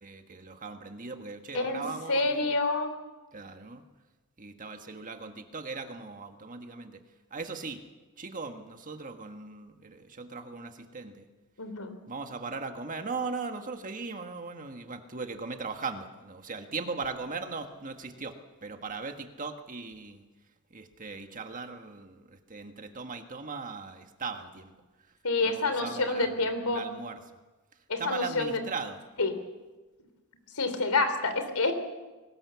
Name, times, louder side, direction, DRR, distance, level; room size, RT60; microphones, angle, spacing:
voice 1, 0.0-2.5 3.3-3.8 4.4-7.0 7.3-7.8 8.2-11.3 12.1-18.3 18.6-20.2 20.7-24.7 25.4-27.2 28.0-29.0, right 4 dB, 35° right, 6 dB, 1.6 m, -38 dB
voice 2, 1.5-2.9 11.6-11.9 25.2-26.9 27.9-28.6 29.2-29.3 30.6-31.7, left 3 dB, 85° left, 9 dB, 3.3 m, -28 dB
21.5 x 19.5 x 7.0 m, 1.2 s
head